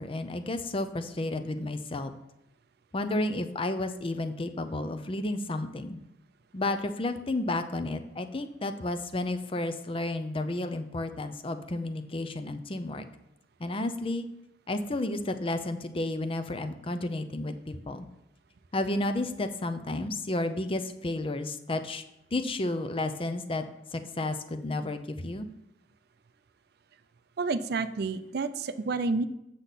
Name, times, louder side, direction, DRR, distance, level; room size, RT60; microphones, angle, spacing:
voice 1, 0.0-2.1 2.9-6.0 6.5-13.0 13.6-14.3 14.7-18.1 18.7-22.0 22.3-23.6 23.9-25.5, left 2 dB, 30° left, 9 dB, 0.6 m, -32 dB
voice 2, 27.4-29.3, right 3 dB, 60° right, 13 dB, 0.5 m, -29 dB
7.9 x 6.7 x 4.1 m, 0.85 s
head